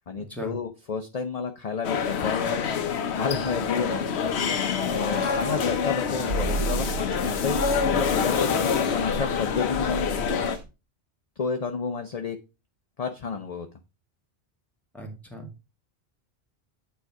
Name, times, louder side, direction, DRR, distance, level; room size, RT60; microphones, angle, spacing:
voice 1, 0.1-2.7 3.1-4.1 4.8-7.6 7.8-10.5 11.4-12.4 13.0-13.7, left 5 dB, 40° left, 5 dB, 0.7 m, -31 dB
sound 1, 1.8-10.6, left 6 dB, 85° left, 1.0 m, -26 dB
sound 2, 4.9-10.6, right 2 dB, 80° right, 1.7 m, -35 dB
voice 2, 14.9-15.6, right 1 dB, ahead, 2 dB, 1.8 m, -38 dB
8.9 x 3.4 x 4.7 m, 0.28 s
omnidirectional pair, 1.1 m